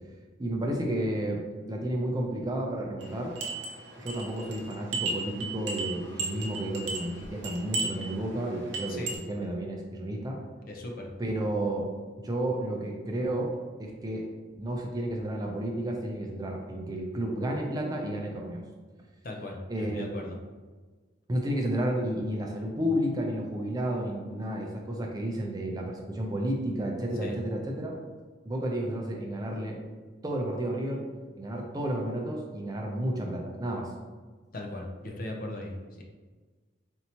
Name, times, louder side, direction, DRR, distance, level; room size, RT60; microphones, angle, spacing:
voice 1, 0.4-1.4 1.7-3.3 4.0-10.4 11.2-11.9 12.2-13.5 13.8-14.3 14.6-18.6 19.7-20.2 21.3-28.0 28.5-29.8 30.2-31.0 31.4-33.9, right 1 dB, 20° right, 0 dB, 0.4 m, -31 dB
sound 1, 3.0-9.2, right 3 dB, 70° right, 0.7 m, -36 dB
voice 2, 10.7-11.1 19.2-20.3 27.2-27.4 34.5-36.0, left 1 dB, 45° left, 1 dB, 0.5 m, -38 dB
4.4 x 2.7 x 2.8 m, 1.4 s
head